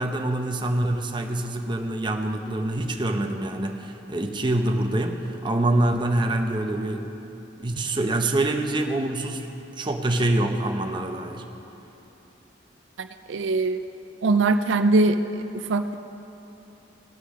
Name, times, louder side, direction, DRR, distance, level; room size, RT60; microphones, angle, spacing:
voice 1, 0.0-7.1 7.6-9.5 9.8-11.5, right 1 dB, 25° right, 4 dB, 0.8 m, -25 dB
voice 2, 13.0-13.8 14.2-15.2 15.5-16.0, right 3 dB, 85° right, 9 dB, 0.5 m, -22 dB
18.0 x 6.7 x 6.4 m, 3.0 s
head